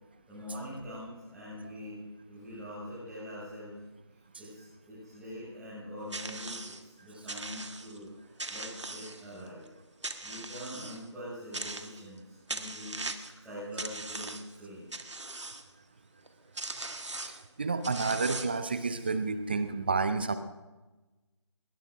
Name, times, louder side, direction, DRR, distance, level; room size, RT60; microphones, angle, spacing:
voice 1, 0.3-2.0 2.3-3.7 4.4-9.6 10.2-15.0, equal, ahead, -16 dB, 6.2 m, -44 dB
sound 1, 6.1-6.8 7.3-8.0 8.4-9.5 10.0-11.0 11.5-12.2 12.5-13.4 13.8-14.6 14.9-15.6 16.3-16.4 16.6-17.4 17.8-18.7, right 2 dB, 70° right, 1.4 m, -39 dB
voice 2, 17.3-20.4, right 4 dB, 20° right, 12 dB, 0.5 m, -30 dB
20.0 x 20.0 x 2.6 m, 1.1 s
figure-of-eight pair, 160°, 16 cm